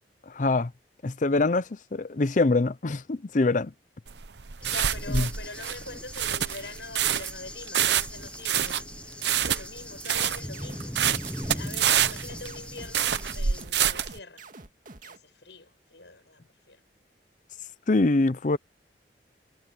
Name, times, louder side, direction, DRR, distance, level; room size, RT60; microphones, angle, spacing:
voice 1, 0.3-0.7 1.0-3.7 5.1-5.3 17.9-18.6, left 3 dB, 45° left, 0.6 m, -24 dB
sound 1, 4.1-14.2, right 9 dB, 75° right, 0.9 m, -27 dB
voice 2, 4.6-14.5 15.0-16.8, left 3 dB, 80° left, 7.3 m, -44 dB
Cricket / Thunder, 4.6-13.6, left 1 dB, 5° left, 1.1 m, -41 dB
sound 2, 10.2-15.2, right 3 dB, 45° right, 2.2 m, -46 dB
head